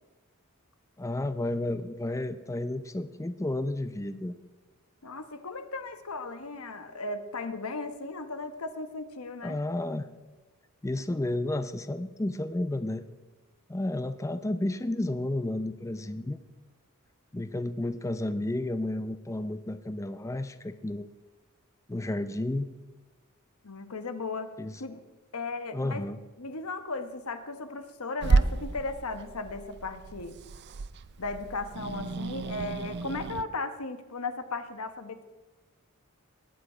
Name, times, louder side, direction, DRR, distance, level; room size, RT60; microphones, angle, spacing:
voice 1, 1.0-4.3 9.4-10.1 10.8-13.0 13.7-16.4 17.3-21.1 21.9-22.7 24.6-24.8 25.7-26.2, left 1 dB, 15° left, 11 dB, 0.5 m, -32 dB
voice 2, 5.0-9.6 23.6-24.5 24.8-25.0 25.3-26.1 26.4-30.4 31.2-35.2, left 3 dB, 85° left, 9 dB, 1.1 m, -36 dB
Growling / Hiss, 28.2-33.4, right 3 dB, 50° right, 0.5 m, -31 dB
19.5 x 8.8 x 5.0 m, 1.2 s
head